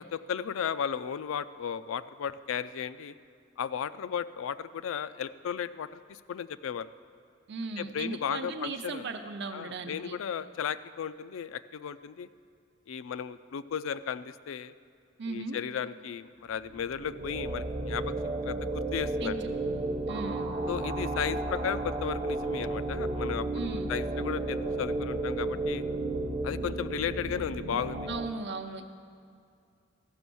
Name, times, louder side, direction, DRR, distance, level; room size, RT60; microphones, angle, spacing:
voice 1, 0.0-3.1 3.6-6.9 7.8-9.0 9.5-12.3 12.9-14.7 15.3-18.1 18.4-19.4 20.7-25.8 26.4-28.1, left 7 dB, 90° left, 14 dB, 0.4 m, -35 dB
voice 2, 7.5-10.2 15.2-15.6 19.2-19.8 20.1-20.5 23.5-23.9 28.1-28.8, right 3 dB, 60° right, 7 dB, 0.7 m, -37 dB
sound 1, 16.7-28.3, right 2 dB, 30° right, 0.8 m, -33 dB
14.5 x 6.1 x 6.9 m, 2.3 s
head